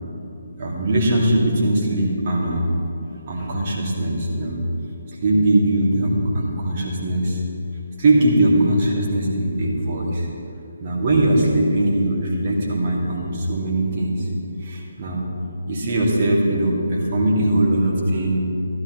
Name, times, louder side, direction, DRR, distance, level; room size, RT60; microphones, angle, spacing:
voice 1, 0.6-2.8 3.3-4.6 5.2-7.4 8.0-10.3 10.8-14.3 14.6-15.2 15.7-18.4, right 1 dB, 35° right, -3 dB, 2.1 m, -20 dB
15.0 x 12.0 x 3.0 m, 2.7 s
figure-of-eight pair, 140°, 0 cm